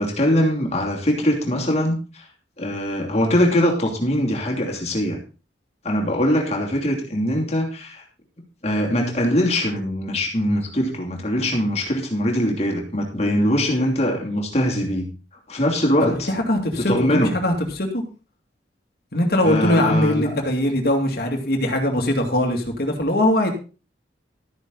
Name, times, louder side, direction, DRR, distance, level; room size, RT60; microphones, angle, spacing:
voice 1, 0.0-2.2 2.6-5.2 5.8-8.0 8.6-15.1 15.5-16.3 16.8-17.3 19.4-20.3, equal, 35° left, 2.9 m, -22 dB
voice 2, 16.0-18.0 19.1-23.5, left 1 dB, 55° left, 2.5 m, -21 dB
13.0 x 9.4 x 4.0 m
head